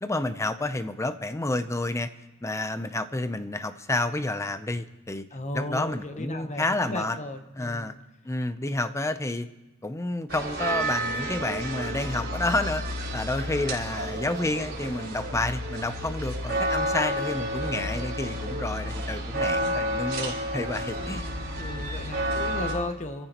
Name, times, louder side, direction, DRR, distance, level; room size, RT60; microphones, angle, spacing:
voice 1, 0.0-2.1 2.4-5.3 5.5-7.2 7.5-7.9 8.2-9.5 9.8-21.2, left 2 dB, 15° left, 10 dB, 0.6 m, -30 dB
voice 2, 5.3-7.9 16.9-17.1 21.0-21.2 21.6-23.3, left 1 dB, 35° left, 7 dB, 1.0 m, -36 dB
sound 1, 10.3-22.7, right 1 dB, 50° right, 4.5 m, -30 dB
27.0 x 14.0 x 3.0 m, 1.1 s
head